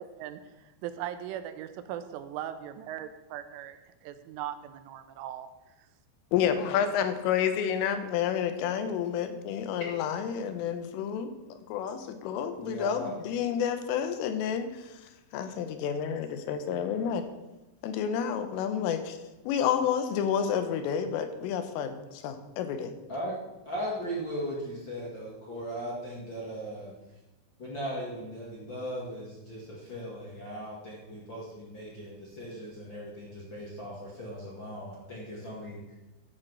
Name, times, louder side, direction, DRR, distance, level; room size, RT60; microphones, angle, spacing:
voice 1, 0.0-5.5, right 11 dB, 85° right, 10 dB, 3.3 m, -39 dB
voice 2, 6.3-17.3 17.8-19.2 19.5-22.9, left 8 dB, 90° left, 9 dB, 3.6 m, -30 dB
voice 3, 12.5-13.1 23.1-23.3 23.7-26.9 27.6-36.0, equal, 55° left, -5 dB, 1.3 m, -38 dB
12.0 x 7.7 x 6.2 m, 1.1 s
omnidirectional pair, 5.6 m